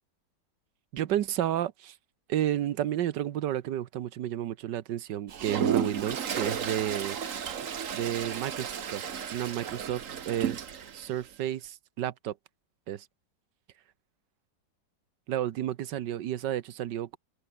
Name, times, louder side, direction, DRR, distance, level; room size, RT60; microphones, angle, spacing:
voice 1, 0.9-1.9 2.3-7.2 7.9-9.0 9.3-10.7 10.9-12.3 12.9-13.0 15.3-17.2, right 11 dB, 75° right, 1.5 m, -31 dB
Toilet flush, 5.3-11.1, right 7 dB, 50° right, 1.5 m, -33 dB
omnidirectional pair, 1.9 m